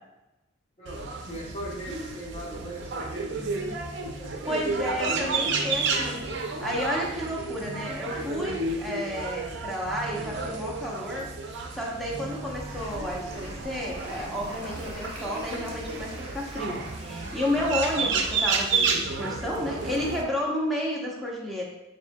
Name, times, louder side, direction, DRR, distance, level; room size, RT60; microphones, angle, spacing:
voice 1, 0.8-4.4 5.9-6.2 6.5-6.8, right 1 dB, 30° left, -3 dB, 0.9 m, -40 dB
sound 1, 0.9-20.2, right 4 dB, 60° right, 0.5 m, -31 dB
voice 2, 4.5-6.2 6.4-21.6, left 1 dB, ahead, -4 dB, 0.7 m, -31 dB
sound 2, 12.5-18.3, equal, 30° right, 1.0 m, -43 dB
6.7 x 2.7 x 2.2 m, 0.97 s
head